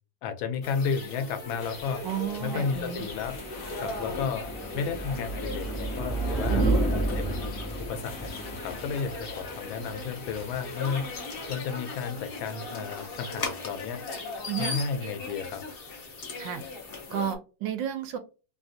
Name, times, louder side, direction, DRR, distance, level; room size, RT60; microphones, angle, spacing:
voice 1, 0.2-2.0 2.4-3.4 3.7-4.5 4.7-6.7 7.2-11.0 11.5-14.0 14.6-15.6, left 6 dB, 90° left, 8 dB, 1.4 m, -33 dB
sound 1, 0.6-17.4, left 3 dB, 65° left, 0.5 m, -39 dB
sound 2, 1.6-11.6, left 2 dB, 50° left, 1.0 m, -46 dB
voice 2, 2.0-3.1 6.5-6.8 14.5-14.7 16.4-16.6 17.1-18.2, right 10 dB, 75° right, 9 dB, 1.2 m, -32 dB
sound 3, 2.3-11.1, right 2 dB, 15° left, 0.9 m, -32 dB
3.4 x 2.4 x 2.6 m, 0.32 s
omnidirectional pair, 2.1 m